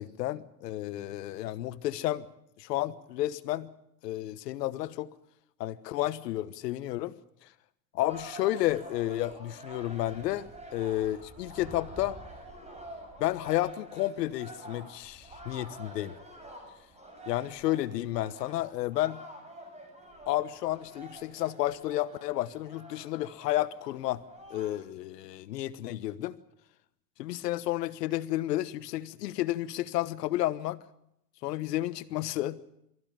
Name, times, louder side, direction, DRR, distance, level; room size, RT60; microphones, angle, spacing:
voice 1, 0.0-2.3 2.6-3.7 4.0-5.1 5.6-7.1 7.9-12.2 13.2-16.2 17.3-19.2 20.3-24.2 24.5-26.4 27.2-30.8 31.4-32.6, left 15 dB, 85° left, 1.3 m, -31 dB
sound 1, 8.1-24.7, right 1 dB, 15° right, 7.2 m, -48 dB
24.5 x 15.0 x 8.9 m
supercardioid pair, 110°, 48 cm